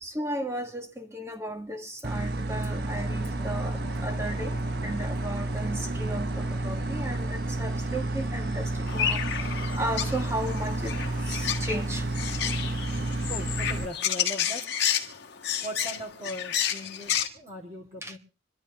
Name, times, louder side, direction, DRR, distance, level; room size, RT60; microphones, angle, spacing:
voice 1, 0.0-4.6 4.8-9.2 9.8-11.0 11.3-12.1 18.0-18.2, right 1 dB, 15° right, 1.4 m, -35 dB
sound 1, 2.0-13.8, right 2 dB, 50° right, 0.8 m, -30 dB
sound 2, 2.6-14.6, left 3 dB, 25° left, 2.2 m, -48 dB
sound 3, 8.9-17.3, left 9 dB, 55° left, 1.5 m, -31 dB
voice 2, 13.3-14.6 15.6-18.2, equal, 35° right, 3.3 m, -39 dB
26.5 x 12.0 x 3.5 m
head